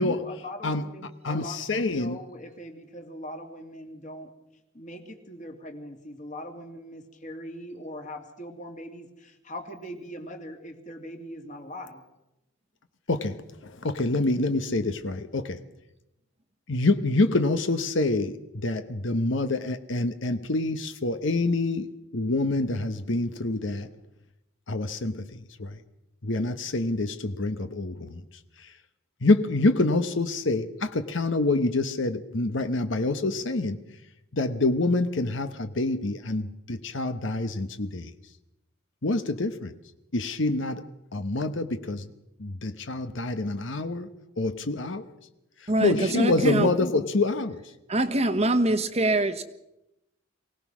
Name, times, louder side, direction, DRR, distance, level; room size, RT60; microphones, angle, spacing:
voice 1, 0.0-1.6 1.9-4.3 4.7-12.0, equal, 40° left, 4 dB, 2.6 m, -41 dB
voice 2, 1.2-2.2 13.1-15.6 16.7-21.9 22.1-23.9 24.7-25.8 26.2-28.2 28.6-28.7 29.2-33.8 34.3-38.1 39.0-39.7 40.1-40.8 41.1-42.1 42.4-44.1 44.4-45.1 45.6-47.6, left 2 dB, 65° left, 9 dB, 1.0 m, -26 dB
voice 3, 45.7-46.7 47.9-49.4, right 2 dB, 30° right, 9 dB, 1.1 m, -24 dB
24.0 x 17.5 x 6.2 m, 0.90 s
head